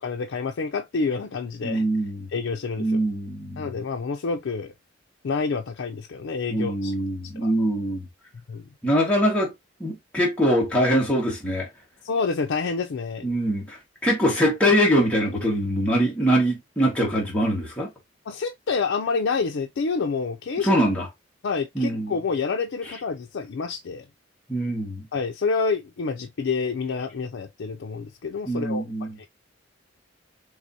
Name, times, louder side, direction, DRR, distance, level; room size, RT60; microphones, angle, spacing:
voice 1, 0.0-1.8 2.3-3.0 3.6-4.7 5.2-6.9 7.2-7.5 8.5-8.7 12.0-13.3 18.3-20.8 21.4-24.0 25.1-28.8 29.2-29.3, left 4 dB, 75° left, 0.4 m, -28 dB
voice 2, 1.6-2.3 2.8-3.7 6.5-8.1 8.8-9.5 9.8-11.7 13.2-17.9 20.6-21.1 21.7-22.1 24.5-25.1 28.5-29.2, equal, 5° left, 1.4 m, -23 dB
4.7 x 3.3 x 2.7 m
head